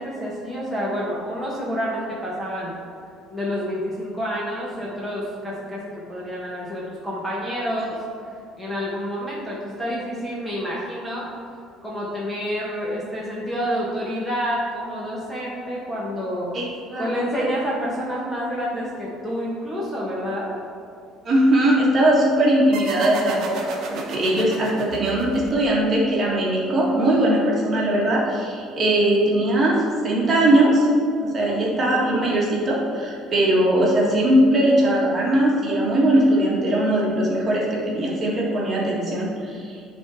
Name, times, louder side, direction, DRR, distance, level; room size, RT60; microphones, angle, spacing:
voice 1, 0.0-2.7 3.3-8.0 8.6-11.3 11.8-16.5 17.0-20.6 31.4-31.7, equal, ahead, -6 dB, 1.0 m, -28 dB
voice 2, 21.2-23.6 23.9-30.9 31.2-39.8, right 1 dB, 30° right, -4 dB, 1.6 m, -20 dB
sound 1, 22.7-26.0, right 3 dB, 55° right, 1.0 m, -34 dB
9.8 x 3.7 x 4.3 m, 2.4 s
cardioid pair, 160°, 0 cm